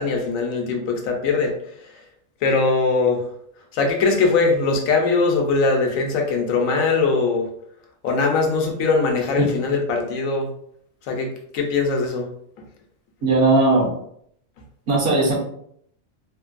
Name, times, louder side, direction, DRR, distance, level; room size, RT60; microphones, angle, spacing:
voice 1, 0.0-1.5 2.4-3.2 3.7-7.5 8.0-10.5 11.1-11.3 11.5-12.3, left 4 dB, 85° left, 2 dB, 1.0 m, -21 dB
voice 2, 13.2-13.9 14.9-15.4, right 2 dB, 70° right, -2 dB, 1.2 m, -18 dB
3.1 x 2.1 x 2.4 m, 0.68 s
omnidirectional pair, 1.4 m